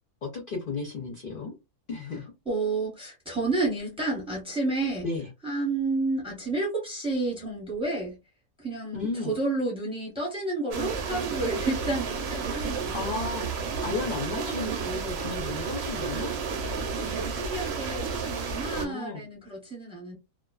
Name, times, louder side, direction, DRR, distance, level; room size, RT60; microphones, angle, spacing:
voice 1, 0.2-1.5 1.9-2.2 5.0-5.3 8.9-9.3 12.9-16.3 18.8-19.2, left 3 dB, 50° left, 0.7 m, -34 dB
voice 2, 2.5-5.1 5.4-8.2 8.6-13.0 17.0-20.2, right 2 dB, 5° right, 0.8 m, -30 dB
sound 1, 10.7-18.9, right 5 dB, 65° right, 0.7 m, -31 dB
2.4 x 2.3 x 2.3 m
omnidirectional pair, 1.5 m